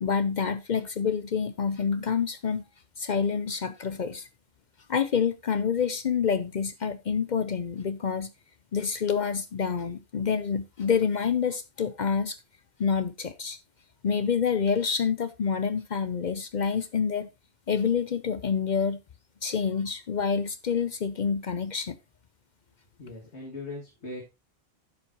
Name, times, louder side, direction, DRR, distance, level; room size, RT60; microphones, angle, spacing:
voice 1, 0.0-2.6 3.0-4.3 4.9-8.3 8.7-12.4 12.8-13.6 14.0-17.3 17.7-19.0 19.4-22.0, left 6 dB, 50° left, 0.6 m, -27 dB
voice 2, 23.0-24.2, left 2 dB, 85° left, 2.7 m, -39 dB
10.5 x 7.4 x 2.9 m
omnidirectional pair, 1.1 m